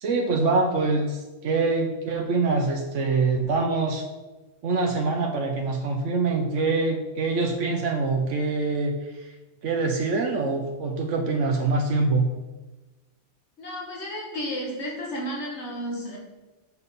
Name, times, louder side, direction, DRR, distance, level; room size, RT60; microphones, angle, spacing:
voice 1, 0.0-4.0 4.6-9.3 9.6-12.3, right 3 dB, 85° right, 3 dB, 1.2 m, -24 dB
voice 2, 13.6-16.2, equal, 65° left, -2 dB, 2.2 m, -32 dB
7.1 x 7.0 x 4.1 m, 1.1 s
omnidirectional pair, 1.2 m